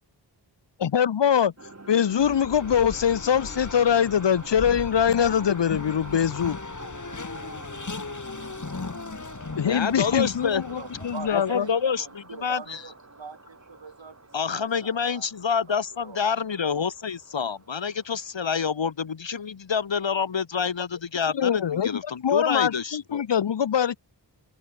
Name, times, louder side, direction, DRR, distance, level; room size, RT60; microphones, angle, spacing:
voice 1, 0.8-1.5 1.9-6.6 9.6-11.7 21.3-24.0, left 8 dB, 70° left, 0.8 m, -23 dB
sound 1, 1.6-18.3, right 2 dB, 35° right, 4.9 m, -47 dB
Race car auto racing, 2.1-11.8, left 4 dB, 40° left, 2.2 m, -38 dB
voice 2, 9.6-10.6 11.3-12.8 14.3-23.2, left 6 dB, 85° left, 1.8 m, -27 dB
voice 3, 10.7-14.2 14.5-15.3 15.6-16.2, right 5 dB, 80° right, 4.0 m, -43 dB
wide cardioid pair, 65°, 44 cm